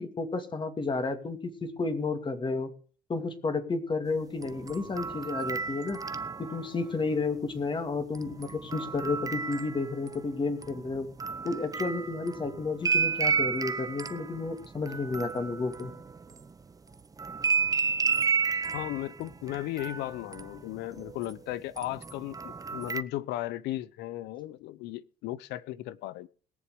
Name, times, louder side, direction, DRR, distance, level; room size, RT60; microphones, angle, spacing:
voice 1, 0.0-2.7 3.1-6.0 6.4-11.1 11.4-15.9, left 3 dB, 30° left, 2.4 m, -32 dB
sound 1, 4.3-6.9 8.1-10.3 10.6-16.5 17.2-21.3 21.8-23.0, right 5 dB, 20° right, 0.8 m, -32 dB
voice 2, 18.7-26.3, left 15 dB, 90° left, 0.9 m, -36 dB
21.0 x 7.2 x 5.0 m
cardioid pair, 110°, 17 cm